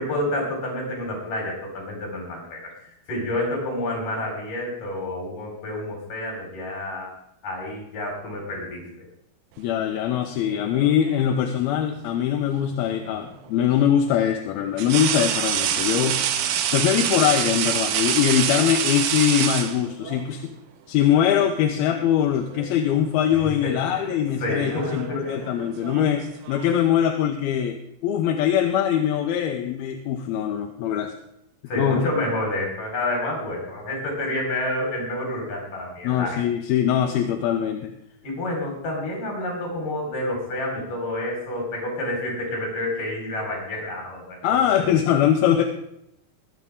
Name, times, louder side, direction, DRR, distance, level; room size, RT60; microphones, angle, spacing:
voice 1, 0.0-7.1 7.4-8.9 23.4-24.1 24.4-25.6 31.7-36.4 38.2-45.0, left 1 dB, 60° left, -1 dB, 5.9 m, -29 dB
voice 2, 9.6-16.4 16.7-20.5 20.9-31.1 31.8-32.0 36.0-37.9 44.4-45.6, left 9 dB, 80° left, 3 dB, 2.8 m, -22 dB
sound 1, 10.5-11.3 13.1-13.3 14.8-20.2 21.4-21.6 22.0-22.8 23.1-23.4 24.3-26.9, right 9 dB, 75° right, 2.6 m, -27 dB
22.0 x 8.6 x 3.6 m, 0.75 s
omnidirectional pair, 4.4 m